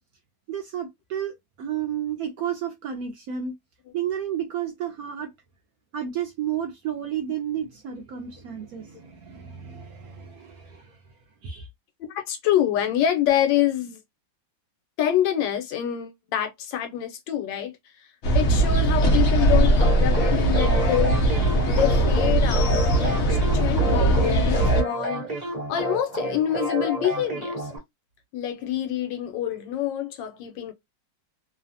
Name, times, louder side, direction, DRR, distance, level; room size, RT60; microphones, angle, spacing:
voice 1, 0.5-3.5 3.9-5.3 5.9-11.0 11.4-11.7, right 9 dB, 75° right, 0.8 m, -31 dB
voice 2, 12.0-14.0 15.0-18.1 18.3-21.2 21.7-27.7 28.3-30.7, left 11 dB, 80° left, 1.3 m, -26 dB
sound 1, 18.2-24.8, right 1 dB, 60° left, 0.7 m, -20 dB
sound 2, 19.8-27.8, right 1 dB, 30° right, 0.9 m, -30 dB
3.1 x 2.0 x 2.6 m
omnidirectional pair, 2.0 m